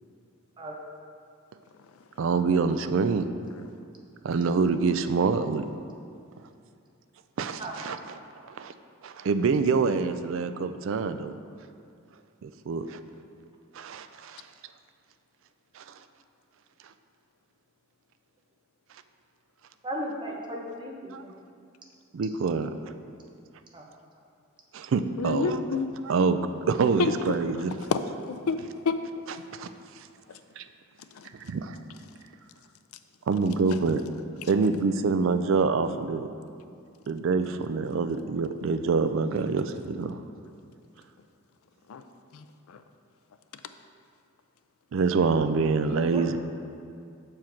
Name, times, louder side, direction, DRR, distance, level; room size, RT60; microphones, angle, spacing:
voice 1, 2.2-3.3 4.2-5.6 7.4-8.2 8.4-8.7 9.0-11.3 12.4-13.0 13.7-14.4 15.7-15.9 21.1-21.2 22.1-22.7 24.7-25.6 26.1-26.4 26.7-27.7 29.5-29.7 30.0-30.1 30.6-30.7 31.3-31.8 33.3-34.0 34.5-36.3 37.1-40.2 44.9-46.4, right 4 dB, 60° right, 0.4 m, -26 dB
voice 2, 19.8-21.3 23.7-23.8 45.9-46.2, equal, 20° right, 0.8 m, -36 dB
voice 3, 25.2-25.9 27.0-27.1 27.9-28.6 28.8-28.9 30.3-30.4 31.1-31.3 34.4-34.5 41.9-42.0 42.3-42.8, left 5 dB, 80° left, 0.4 m, -29 dB
7.1 x 4.9 x 4.5 m
head